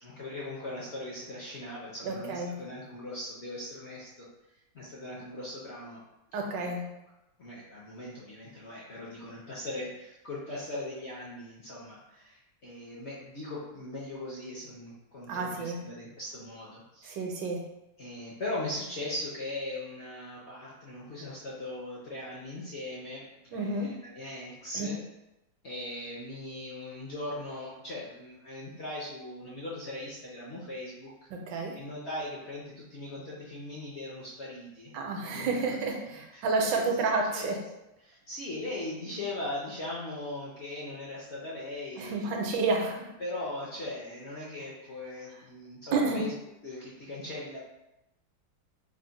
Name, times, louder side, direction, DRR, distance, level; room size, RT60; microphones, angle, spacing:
voice 1, 0.0-4.3 4.7-6.0 6.6-6.8 7.4-17.2 18.0-25.0 25.6-31.1 31.8-35.7 36.3-36.5 36.7-37.0 37.3-37.5 38.0-42.3 42.9-43.0 43.2-46.3 46.6-47.6, left 1 dB, 60° left, -6 dB, 0.7 m, -39 dB
voice 2, 2.0-2.6 6.3-6.9 15.3-15.8 17.1-17.6 23.5-24.0 24.7-24.9 31.3-31.8 34.9-37.6 42.0-43.1 45.9-46.3, right 3 dB, 75° right, 2 dB, 1.3 m, -30 dB
3.5 x 2.1 x 3.9 m, 0.91 s
omnidirectional pair, 2.0 m